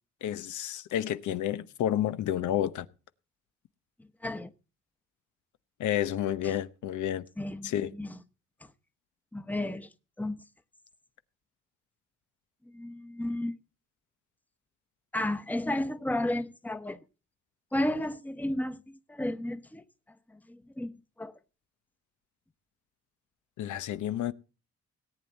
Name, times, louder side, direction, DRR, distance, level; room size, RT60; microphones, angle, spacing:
voice 1, 0.2-2.9 5.8-7.2 7.6-7.9 23.6-24.3, left 11 dB, 75° left, 0.9 m, -30 dB
voice 2, 7.4-8.2 8.6-8.7 9.3-9.9 10.2-10.4 12.7-13.6 15.1-17.0 17.7-18.8 19.1-19.8 20.5-20.9 21.2-21.3, left 1 dB, 5° left, 1.0 m, -32 dB
18.0 x 8.9 x 4.1 m
cardioid pair, 90°, 30 cm